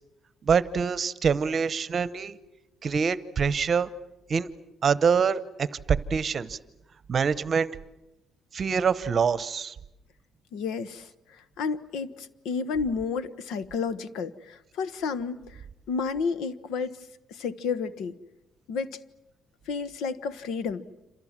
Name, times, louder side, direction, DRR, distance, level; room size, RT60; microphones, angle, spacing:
voice 1, 0.4-2.4 2.8-3.9 4.3-4.5 4.8-6.6 7.1-7.8 8.5-9.7, right 6 dB, 30° right, 16 dB, 0.9 m, -25 dB
voice 2, 10.5-15.6 15.9-16.9 17.3-18.2 18.7-19.0 19.7-20.9, left 5 dB, 85° left, 15 dB, 1.3 m, -31 dB
28.0 x 27.0 x 7.5 m, 0.94 s
cardioid pair, 170°, 0 cm